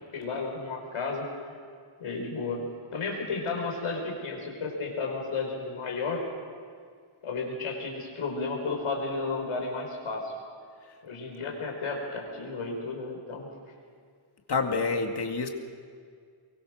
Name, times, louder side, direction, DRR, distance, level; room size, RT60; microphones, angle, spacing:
voice 1, 0.1-1.3 2.0-2.6 2.9-6.2 7.2-10.3 11.0-13.5, left 4 dB, 90° left, 1 dB, 5.1 m, -33 dB
voice 2, 14.5-15.5, left 4 dB, 55° left, 3 dB, 2.2 m, -27 dB
23.5 x 23.0 x 6.4 m, 2.1 s
cardioid pair, 90°, 48 cm